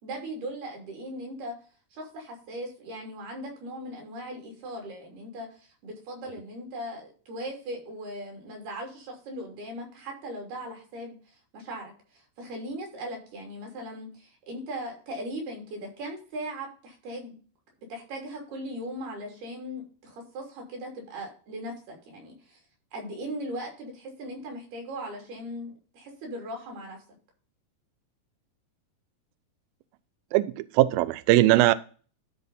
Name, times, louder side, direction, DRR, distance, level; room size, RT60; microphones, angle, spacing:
voice 1, 0.0-1.5 1.9-17.4 17.9-22.6 22.9-27.0, right 1 dB, 65° right, 5.0 m, -38 dB
voice 2, 30.3-31.7, right 16 dB, 90° right, 2.1 m, -20 dB
12.5 x 4.3 x 5.4 m
omnidirectional pair, 4.9 m